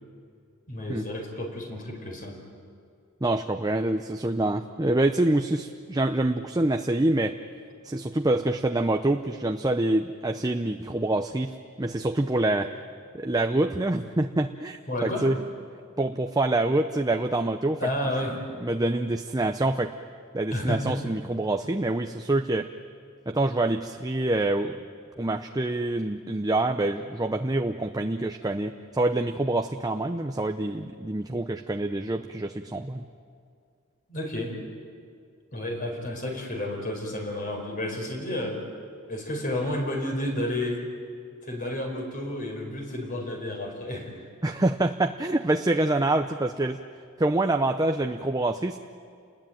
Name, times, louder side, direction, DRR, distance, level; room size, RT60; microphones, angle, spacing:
voice 1, 0.7-2.4 14.9-15.3 17.8-18.4 20.5-20.9 34.1-34.5 35.5-38.7 39.1-40.9 41.4-44.1, left 1 dB, 40° left, 2 dB, 4.9 m, -31 dB
voice 2, 3.2-7.4 7.8-12.7 13.1-15.4 16.0-17.8 18.6-19.9 20.3-22.7 23.3-24.8 25.2-33.1 44.4-46.8 47.2-48.8, right 2 dB, 15° right, 6 dB, 0.7 m, -26 dB
29.5 x 20.5 x 9.1 m, 2.3 s
head